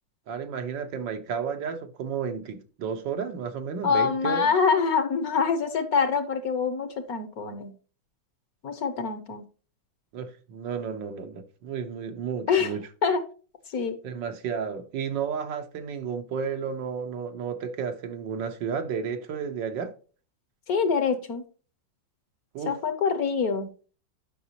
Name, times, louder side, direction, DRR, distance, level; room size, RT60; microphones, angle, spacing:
voice 1, 0.3-4.5 10.1-12.8 14.0-19.9 22.5-22.7, right 6 dB, 80° right, 1.8 m, -32 dB
voice 2, 3.8-7.7 8.6-9.4 12.5-12.7 13.0-13.2 13.7-14.0 20.7-21.4 22.7-23.7, left 5 dB, 55° left, 1.3 m, -25 dB
9.9 x 6.0 x 2.9 m
omnidirectional pair, 2.0 m